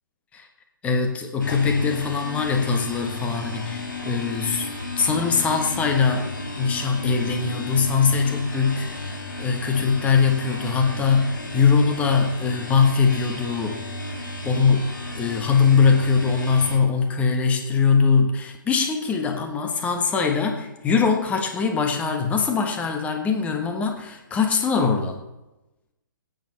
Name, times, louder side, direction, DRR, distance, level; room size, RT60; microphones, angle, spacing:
voice 1, 0.8-6.3 6.6-13.8 14.4-25.2, left 5 dB, 10° left, 3 dB, 1.3 m, -22 dB
sound 1, 1.4-16.8, left 2 dB, 70° left, 3.4 m, -33 dB
18.0 x 9.2 x 4.3 m, 1.0 s
figure-of-eight pair, 130°, 11 cm